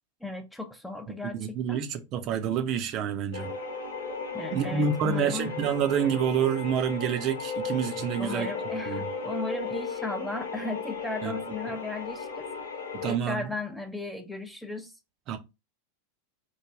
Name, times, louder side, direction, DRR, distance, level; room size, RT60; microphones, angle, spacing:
voice 1, 0.2-1.8 4.3-5.5 8.2-12.5 13.1-14.9, left 2 dB, 5° left, 0.6 m, -36 dB
voice 2, 1.3-3.5 4.5-8.5 8.9-9.1 11.2-11.4 13.0-13.5 15.3-15.4, right 7 dB, 40° right, 0.5 m, -28 dB
sound 1, 3.3-13.2, left 4 dB, 70° left, 1.0 m, -35 dB
3.2 x 2.1 x 3.6 m
figure-of-eight pair, 90°, 0 cm